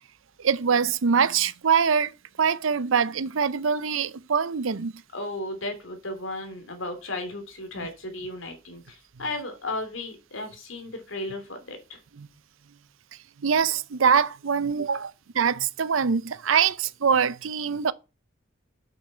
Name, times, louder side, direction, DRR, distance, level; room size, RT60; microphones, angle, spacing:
voice 1, 0.4-5.0 7.8-7.9 12.2-12.3 13.4-17.9, right 6 dB, 80° right, 0.6 m, -24 dB
voice 2, 5.1-12.0, left 2 dB, 80° left, 2.9 m, -35 dB
8.0 x 6.9 x 5.6 m
head